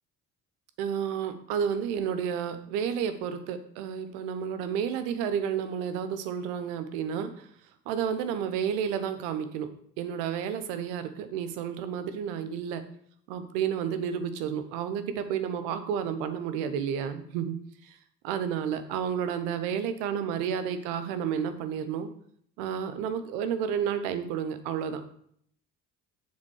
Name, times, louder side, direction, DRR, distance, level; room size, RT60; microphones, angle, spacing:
voice 1, 0.8-7.5 7.9-9.7 10.0-12.8 13.3-17.5 17.8-17.9 18.2-22.1 22.6-25.1, right 8 dB, 75° right, 10 dB, 0.9 m, -31 dB
7.4 x 3.9 x 6.2 m, 0.65 s
hypercardioid pair, 45°, 46 cm